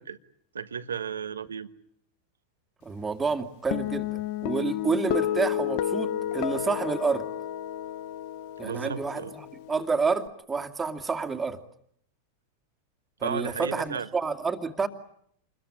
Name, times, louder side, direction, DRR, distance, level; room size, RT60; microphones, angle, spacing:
voice 1, 0.5-1.7 8.6-9.3 13.2-14.1, right 6 dB, 85° right, 11 dB, 1.4 m, -33 dB
voice 2, 2.8-7.3 8.6-11.6 13.2-14.9, right 4 dB, 15° right, 7 dB, 2.4 m, -29 dB
Guitar, 3.7-10.3, left 11 dB, 55° left, 1.1 m, -31 dB
28.0 x 22.0 x 8.9 m, 0.68 s
hypercardioid pair, 95°, 0 cm